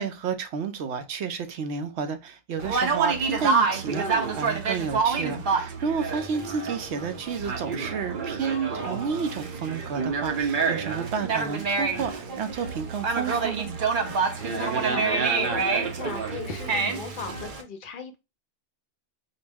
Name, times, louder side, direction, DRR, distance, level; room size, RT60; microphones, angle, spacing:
voice 1, 0.0-4.1 4.3-13.7, right 6 dB, 90° right, 0.9 m, -31 dB
Conversation, 2.6-17.6, right 4 dB, 55° right, 0.8 m, -27 dB
voice 2, 14.1-18.2, left 5 dB, 60° left, 0.6 m, -38 dB
4.1 x 2.0 x 3.4 m
omnidirectional pair, 1.1 m